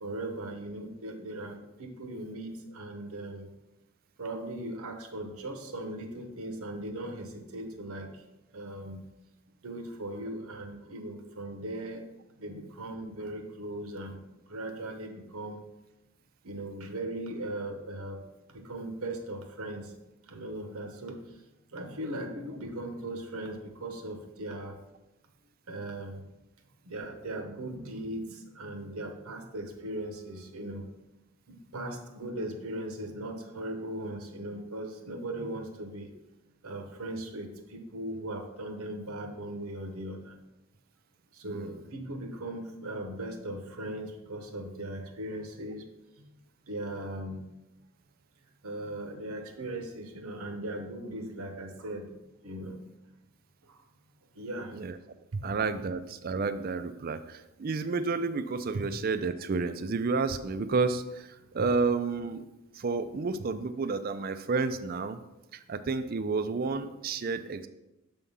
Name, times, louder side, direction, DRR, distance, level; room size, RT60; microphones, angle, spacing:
voice 1, 0.0-3.5 4.2-8.2 8.5-9.0 9.6-12.1 12.4-15.6 16.4-18.2 18.5-19.9 20.3-21.4 21.7-24.8 25.7-26.2 26.8-30.9 31.5-36.1 36.6-40.4 41.3-45.9 46.2-46.3 46.7-47.4 48.6-52.1 52.4-52.8 53.6-53.8 54.3-54.8 55.3-55.4, right 1 dB, 80° right, 5 dB, 0.9 m, -38 dB
voice 2, 55.4-62.4 62.7-65.2 65.5-67.7, right 4 dB, 40° right, 11 dB, 0.4 m, -31 dB
6.8 x 3.6 x 5.5 m, 0.96 s
head